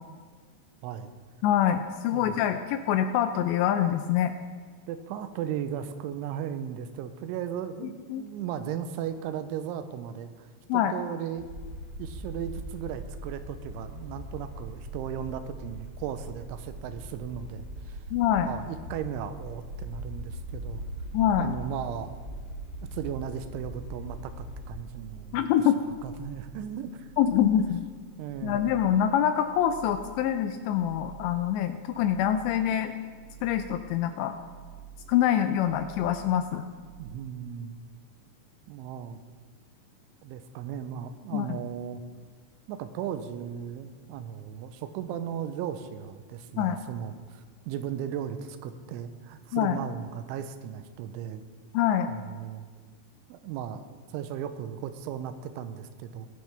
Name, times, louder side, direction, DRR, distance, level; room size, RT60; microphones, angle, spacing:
voice 1, 1.4-4.3 8.1-8.2 10.7-10.9 18.1-18.5 21.1-21.5 25.3-25.8 27.2-27.8 28.4-32.9 33.4-34.4 35.1-36.7 41.3-41.6 46.6-46.8 49.5-49.8 51.7-52.1, left 10 dB, 85° left, 8 dB, 2.6 m, -25 dB
voice 2, 2.1-2.5 4.9-11.5 12.0-18.0 18.4-20.8 21.3-22.1 22.9-25.4 26.0-27.1 27.6-27.7 28.2-28.8 37.0-37.8 38.7-39.2 40.2-42.0 42.7-51.4 52.1-52.7 53.3-56.3, right 9 dB, 85° right, 10 dB, 3.1 m, -36 dB
sound 1, 11.4-24.7, equal, 45° left, 4.0 m, -40 dB
sound 2, 20.3-37.1, right 7 dB, 60° right, 3.9 m, -49 dB
20.0 x 9.5 x 3.4 m, 1.5 s
omnidirectional pair, 5.4 m